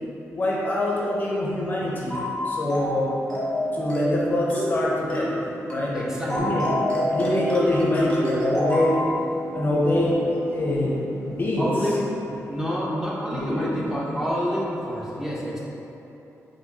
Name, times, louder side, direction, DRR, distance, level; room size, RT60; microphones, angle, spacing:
voice 1, 0.3-3.1 3.7-5.3 5.7-6.7 7.1-9.0 9.5-10.9 11.2-11.7 13.3-13.8, left 1 dB, 35° left, -5 dB, 0.6 m, -24 dB
sound 1, 1.7-12.7, right 1 dB, 70° right, 0.6 m, -42 dB
sound 2, 2.1-2.4 2.7-3.0 3.3-3.6 3.9-4.2 4.5-4.8 5.1-5.4 5.7-5.9 6.3-9.0, equal, 15° left, 1.2 m, -26 dB
voice 2, 5.9-6.5 9.7-9.8 11.6-12.1 12.5-15.6, equal, 5° right, -7 dB, 0.8 m, -28 dB
5.6 x 2.6 x 2.7 m, 3.0 s
wide cardioid pair, 110°, 6 cm